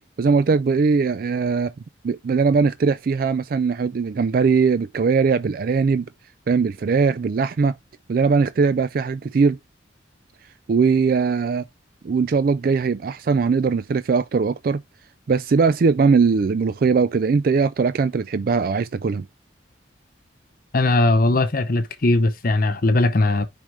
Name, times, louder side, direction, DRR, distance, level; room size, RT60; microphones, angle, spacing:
voice 1, 0.2-1.7 2.0-6.1 6.5-7.8 8.1-9.6 10.7-11.6 12.0-14.8 15.3-19.3, right 5 dB, 50° right, 0.3 m, -20 dB
voice 2, 20.7-23.4, left 2 dB, 50° left, 0.8 m, -19 dB
6.2 x 5.1 x 3.2 m
head